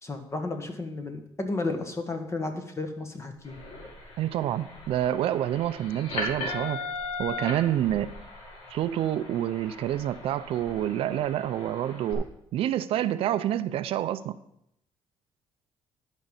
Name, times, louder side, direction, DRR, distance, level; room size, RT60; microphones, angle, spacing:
voice 1, 0.0-3.6, left 3 dB, 30° left, 6 dB, 1.5 m, -33 dB
sound 1, 3.4-12.1, left 2 dB, 80° left, 2.3 m, -38 dB
voice 2, 4.2-6.8 7.2-8.1 8.7-14.4, right 12 dB, 75° right, 13 dB, 0.5 m, -28 dB
11.5 x 5.3 x 5.4 m, 0.78 s
cardioid pair, 95°, 10 cm